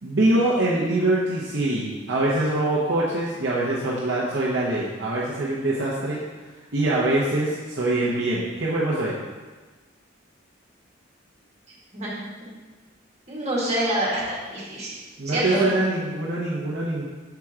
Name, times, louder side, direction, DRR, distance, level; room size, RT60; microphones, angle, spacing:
voice 1, 0.0-6.2 6.7-9.1 15.2-17.0, right 2 dB, 60° right, -6 dB, 0.8 m, -24 dB
voice 2, 11.9-12.3 13.3-14.9 15.2-15.7, right 1 dB, 35° right, -7 dB, 1.8 m, -26 dB
5.9 x 4.5 x 3.6 m, 1.3 s
head